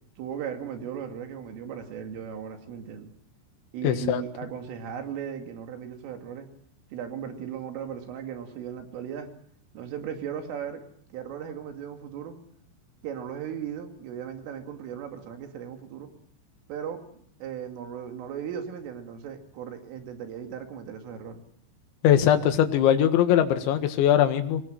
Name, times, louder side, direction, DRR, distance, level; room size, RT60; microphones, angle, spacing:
voice 1, 0.2-3.1 3.7-6.5 6.9-9.3 9.7-10.8 11.1-12.4 13.0-16.1 16.7-21.4, right 8 dB, 80° right, 5 dB, 4.9 m, -37 dB
voice 2, 3.8-4.2 22.0-24.6, left 10 dB, 70° left, 7 dB, 3.9 m, -21 dB
25.0 x 20.0 x 7.5 m, 0.62 s
omnidirectional pair, 5.8 m